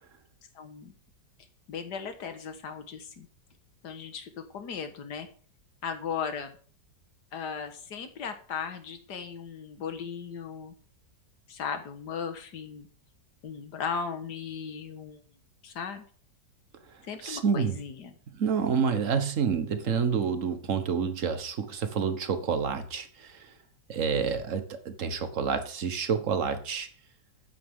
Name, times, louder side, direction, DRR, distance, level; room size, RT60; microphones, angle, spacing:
voice 1, 0.6-0.9 1.7-3.3 3.8-5.3 5.8-6.6 7.3-10.7 11.5-12.9 13.4-15.2 15.6-16.1 17.1-18.1, left 6 dB, 70° left, 8 dB, 1.9 m, -37 dB
voice 2, 17.2-17.8 18.3-23.5 23.9-26.9, right 6 dB, 50° right, 9 dB, 1.5 m, -28 dB
13.0 x 9.5 x 3.7 m, 0.44 s
omnidirectional pair, 1.9 m